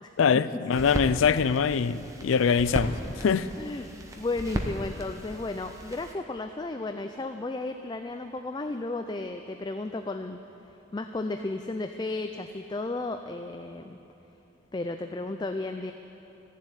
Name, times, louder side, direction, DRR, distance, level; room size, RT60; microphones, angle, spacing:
voice 1, 0.2-3.5, left 6 dB, 90° left, 16 dB, 0.4 m, -24 dB
sound 1, 0.7-6.1, equal, 15° right, 0.9 m, -36 dB
voice 2, 3.6-3.9 4.2-10.4 10.9-14.0 14.7-15.9, left 2 dB, 20° left, 7 dB, 0.3 m, -33 dB
14.5 x 7.4 x 9.7 m, 2.9 s
head